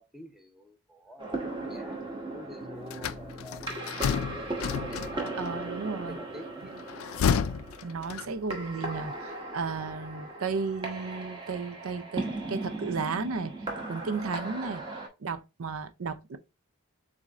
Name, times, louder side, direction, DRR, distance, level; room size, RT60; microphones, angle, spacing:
voice 1, 0.0-5.5 5.9-6.7, equal, ahead, 0.6 m, -49 dB
sound 1, 1.2-15.1, right 2 dB, 20° right, 0.9 m, -38 dB
sound 2, 2.6-7.5, left 3 dB, 50° right, 2.8 m, -52 dB
sound 3, 2.9-5.5 6.8-8.6, left 7 dB, 85° left, 0.3 m, -30 dB
voice 2, 5.4-6.2 7.8-13.5 13.9-14.8 15.2-16.4, right 4 dB, 90° right, 0.5 m, -34 dB
7.1 x 2.6 x 2.4 m
head